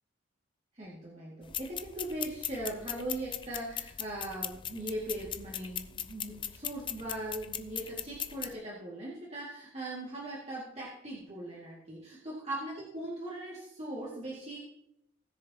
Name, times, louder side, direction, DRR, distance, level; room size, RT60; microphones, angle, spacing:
voice 1, 0.7-14.6, right 1 dB, 35° right, -5 dB, 2.0 m, -40 dB
sound 1, 1.4-8.5, left 9 dB, 25° left, 0.4 m, -39 dB
19.5 x 6.7 x 2.9 m, 0.80 s
head